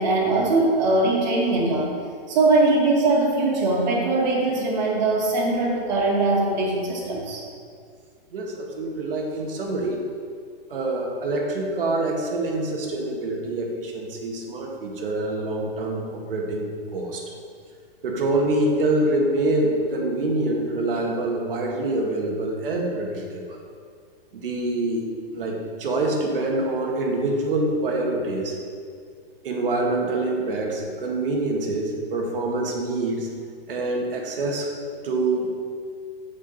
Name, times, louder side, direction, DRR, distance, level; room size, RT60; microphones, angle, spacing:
voice 1, 0.0-1.9 2.3-7.4, right 2 dB, 50° right, -2 dB, 2.2 m, -21 dB
voice 2, 8.3-10.0 10.7-17.3 18.0-23.6 24.3-25.1 25.3-28.6 29.4-33.3 33.7-34.7 35.0-35.5, right 2 dB, 70° right, 0 dB, 1.9 m, -25 dB
7.8 x 7.4 x 4.1 m, 2.2 s
hypercardioid pair, 160°, 29 cm